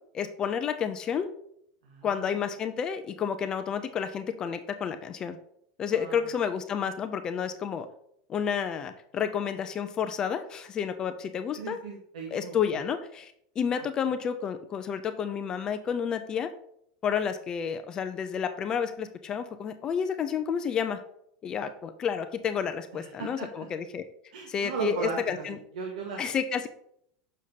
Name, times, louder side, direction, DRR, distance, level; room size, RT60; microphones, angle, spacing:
voice 1, 0.1-1.3 2.0-5.4 5.8-7.9 8.3-11.8 12.3-16.5 17.0-21.0 21.4-24.0 24.5-25.6 26.2-26.7, left 7 dB, 20° left, 9 dB, 0.3 m, -30 dB
voice 2, 1.8-2.3 5.9-6.3 11.5-12.6 13.7-13.8 22.9-23.7 24.3-26.2, right 5 dB, 90° right, 1 dB, 1.0 m, -37 dB
6.7 x 6.3 x 2.7 m, 0.70 s
supercardioid pair, 175°, 4 cm